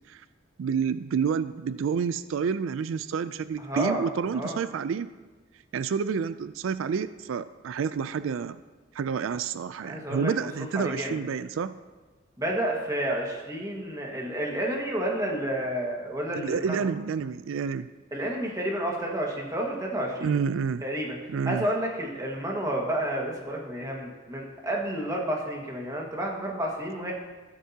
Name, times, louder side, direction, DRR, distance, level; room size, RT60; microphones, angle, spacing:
voice 1, 0.6-5.1 5.7-8.6 8.9-11.8 16.3-17.9 20.2-20.8 21.3-21.7, right 6 dB, 80° right, 14 dB, 0.3 m, -29 dB
voice 2, 3.6-4.0 4.3-4.6 9.8-10.3 10.7-11.2 12.4-16.9 18.1-20.3 20.8-21.2 21.4-27.1, right 1 dB, 15° right, -1 dB, 1.6 m, -30 dB
14.0 x 12.0 x 2.8 m, 1.3 s
head